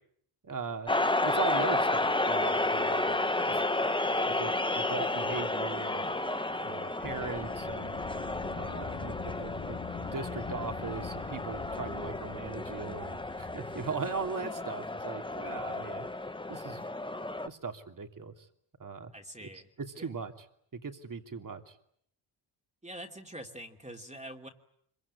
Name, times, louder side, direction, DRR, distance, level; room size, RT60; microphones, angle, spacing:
voice 1, 0.4-0.9 1.2-3.2 3.5-3.6 4.3-6.1 6.6-8.0 8.5-16.1 16.5-16.8 17.4-18.3 18.8-19.1 19.8-20.3 20.7-21.8, right 5 dB, 40° right, 5 dB, 2.9 m, -39 dB
sound 1, 0.9-17.5, left 2 dB, 10° left, 1.1 m, -32 dB
Wind, 7.0-14.0, left 6 dB, 40° left, 2.3 m, -43 dB
voice 2, 19.1-19.7 20.0-20.1 22.8-24.5, right 1 dB, 15° right, 3 dB, 2.9 m, -45 dB
25.5 x 24.0 x 9.8 m, 0.68 s
cardioid pair, 95°, 50 cm